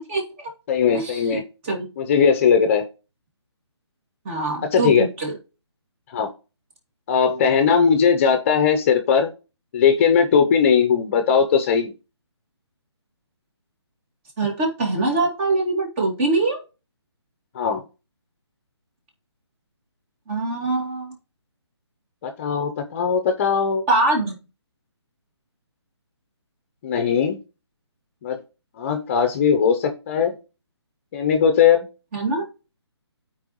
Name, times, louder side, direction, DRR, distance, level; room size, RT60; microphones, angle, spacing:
voice 1, 0.1-0.5 0.9-1.9 4.2-5.3 14.4-16.6 20.3-21.2 23.9-24.4 32.1-32.4, right 2 dB, 25° right, 1 dB, 2.4 m, -23 dB
voice 2, 0.7-1.4 2.0-2.8 4.6-5.1 6.1-6.3 7.1-9.3 9.7-11.9 17.5-17.8 22.2-23.8 26.8-27.4 28.2-28.4 28.8-30.3 31.1-31.8, left 6 dB, 30° left, 6 dB, 0.9 m, -19 dB
12.5 x 4.7 x 3.1 m, 0.31 s
figure-of-eight pair, 150°, 15 cm